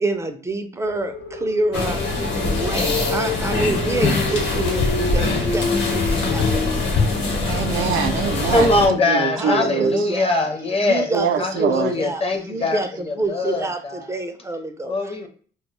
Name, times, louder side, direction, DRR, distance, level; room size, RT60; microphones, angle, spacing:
voice 1, 0.0-1.1 1.4-2.0 2.4-5.6 5.9-6.0 6.3-6.4 8.5-8.6 9.4-10.2 10.8-13.8 14.1-14.9, right 2 dB, 15° right, 0.4 m, -26 dB
sound 1, 0.8-9.0, left 4 dB, 85° left, 0.5 m, -29 dB
sound 2, 1.7-8.9, left 3 dB, 60° left, 1.0 m, -23 dB
voice 2, 7.4-10.0 11.1-11.9, right 6 dB, 85° right, 0.4 m, -24 dB
voice 3, 8.5-14.2 14.8-15.3, left 2 dB, 30° left, 0.6 m, -22 dB
2.1 x 2.0 x 3.1 m
cardioid pair, 90°, 20 cm